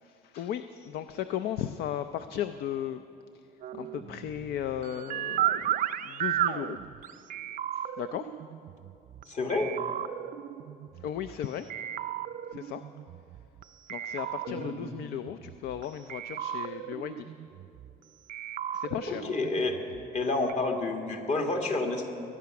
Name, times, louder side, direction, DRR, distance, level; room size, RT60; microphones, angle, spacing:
voice 1, 0.0-3.0 3.3-3.4 3.7-5.6 6.0-6.8 7.7-8.3 11.0-11.7 12.5-12.8 13.9-17.3 18.7-19.3, left 10 dB, 70° left, 11 dB, 0.5 m, -36 dB
sound 1, 3.6-9.2 9.5-11.4 11.7-13.6 13.9-15.8 16.1-17.9 18.3-20.2 20.5-20.6, right 11 dB, 50° right, 0.4 m, -35 dB
voice 2, 9.3-9.7 14.5-14.7 19.1-19.8 20.1-22.1, left 3 dB, 45° left, 3 dB, 1.8 m, -29 dB
21.5 x 9.4 x 5.9 m, 2.7 s
cardioid pair, 110°, 17 cm